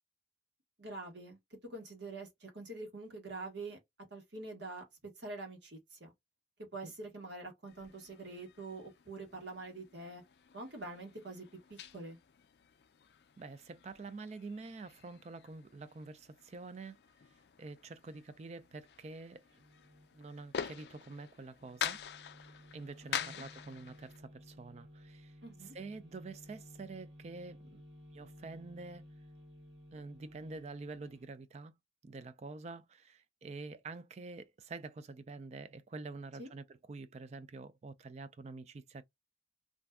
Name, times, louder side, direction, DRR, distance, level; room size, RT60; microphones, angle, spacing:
voice 1, 0.8-1.4 1.7-3.8 4.1-6.1 6.7-10.2 10.5-12.2 23.2-23.4 25.4-25.7 36.4-36.5, right 2 dB, 70° right, 1.2 m, -45 dB
sound 1, 7.7-24.2, left 8 dB, 60° left, 0.4 m, -46 dB
voice 2, 13.4-17.0 17.6-19.4 20.1-22.0 22.7-25.4 25.6-27.8 28.1-29.0 29.9-31.7 32.0-39.0, right 3 dB, 35° right, 0.3 m, -47 dB
sound 2, 19.4-20.5 21.6-31.3, equal, 85° right, 1.2 m, -56 dB
2.5 x 2.2 x 3.4 m
head